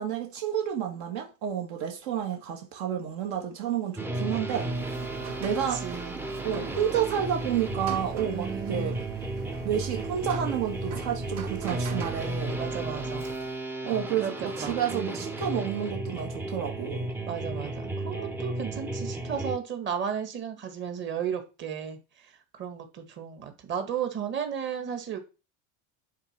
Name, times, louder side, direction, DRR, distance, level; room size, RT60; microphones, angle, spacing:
voice 1, 0.0-4.7 5.4-5.8 6.4-9.0 9.6-12.6 13.8-17.1, right 9 dB, 65° right, 2.0 m, -30 dB
sound 1, 4.0-19.6, right 2 dB, 5° right, 0.6 m, -34 dB
Rain, 4.5-13.7, right 8 dB, 50° right, 3.8 m, -43 dB
voice 2, 5.7-6.2 8.3-9.0 12.5-13.3 14.2-15.3 17.3-22.0 22.6-25.2, right 7 dB, 35° right, 2.0 m, -34 dB
9.7 x 4.1 x 6.1 m
supercardioid pair, 150°, 35 cm